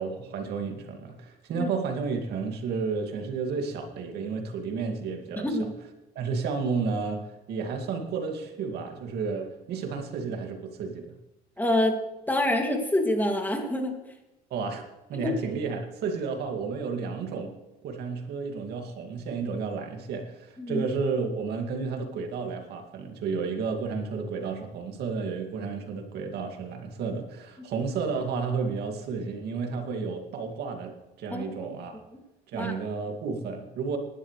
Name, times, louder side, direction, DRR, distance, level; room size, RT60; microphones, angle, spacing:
voice 1, 0.0-5.7 6.2-11.1 14.5-17.6 17.8-32.0 32.5-34.0, right 5 dB, 75° right, 3 dB, 2.3 m, -32 dB
voice 2, 11.6-12.0 12.3-14.0 15.2-15.3 20.6-20.8 31.3-31.7 32.5-32.7, left 1 dB, 10° left, 2 dB, 2.5 m, -26 dB
19.0 x 11.5 x 3.3 m, 1.0 s
cardioid pair, 110°, 17 cm